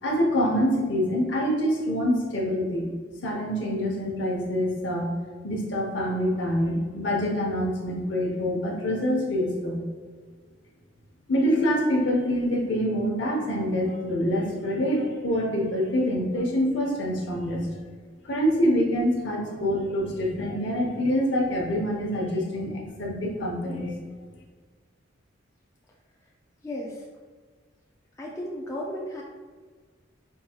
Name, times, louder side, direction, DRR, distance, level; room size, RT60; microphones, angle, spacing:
voice 1, 0.0-2.9 3.2-5.1 5.4-9.8 11.3-17.8 18.2-23.9, equal, 65° left, -1 dB, 0.8 m, -26 dB
voice 2, 26.6-27.1 28.2-29.2, left 1 dB, 15° left, -3 dB, 0.3 m, -34 dB
4.6 x 2.9 x 2.3 m, 1.5 s
head